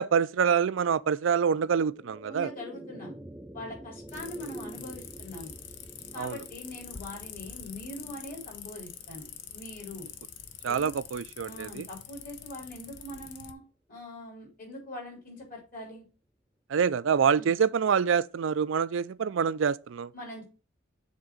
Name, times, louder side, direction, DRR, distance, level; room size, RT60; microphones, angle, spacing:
voice 1, 0.0-2.5 6.2-6.4 10.6-11.9 16.7-20.1, right 6 dB, 70° right, 0.4 m, -26 dB
sound 1, 1.5-12.0, right 1 dB, 10° right, 0.4 m, -48 dB
voice 2, 2.3-3.1 3.5-5.5 6.1-9.3 9.5-10.1 10.7-10.9 11.5-13.6 13.9-16.0 17.3-17.5 20.1-20.4, left 1 dB, 45° left, 3.9 m, -42 dB
sound 2, 4.1-13.5, left 8 dB, 60° left, 0.8 m, -45 dB
7.3 x 3.7 x 6.2 m
head